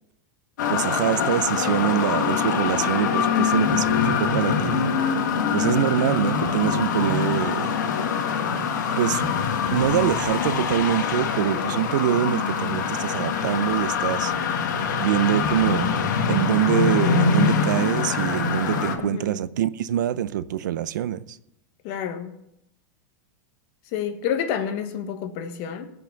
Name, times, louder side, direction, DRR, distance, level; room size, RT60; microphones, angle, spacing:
sound 1, 0.6-18.9, left 6 dB, 80° left, 1.8 m, -24 dB
voice 1, 0.7-4.9 5.5-7.8 9.0-9.2 9.7-14.3 15.0-15.9 16.3-21.4, right 11 dB, 85° right, 0.7 m, -24 dB
voice 2, 19.0-19.4 21.8-22.4 23.9-25.9, left 8 dB, 50° left, 1.5 m, -29 dB
17.0 x 6.1 x 6.9 m
supercardioid pair, 145°, 10 cm